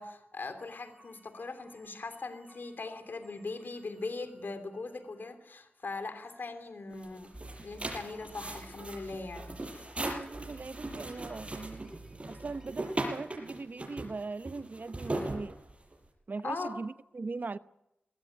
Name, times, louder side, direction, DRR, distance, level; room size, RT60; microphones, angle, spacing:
voice 1, 0.0-7.3 7.6-9.7 16.4-16.8, left 3 dB, 65° left, 3.1 m, -40 dB
sound 1, 0.6-5.5 6.2-7.0 7.3-13.0, right 2 dB, 15° right, 5.3 m, -54 dB
sound 2, 6.9-16.1, right 2 dB, 35° right, 6.6 m, -39 dB
voice 2, 10.0-11.9 12.3-15.6 16.3-17.6, right 3 dB, 55° right, 0.8 m, -40 dB
22.5 x 16.5 x 10.0 m
cardioid pair, 60°, 4 cm